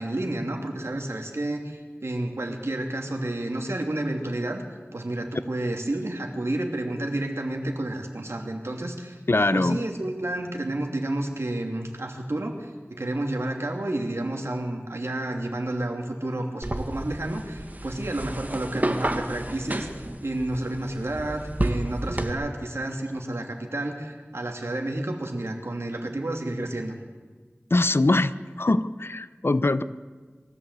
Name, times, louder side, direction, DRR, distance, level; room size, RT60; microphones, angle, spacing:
voice 1, 0.0-4.6 4.9-9.2 9.5-27.0, right 1 dB, 85° right, 3 dB, 2.7 m, -30 dB
voice 2, 9.3-9.8 27.7-29.8, left 2 dB, 65° left, 13 dB, 0.8 m, -22 dB
sound 1, 16.6-22.3, right 1 dB, 40° right, 1.7 m, -31 dB
22.5 x 14.5 x 8.3 m, 1.4 s
wide cardioid pair, 45°, 4 cm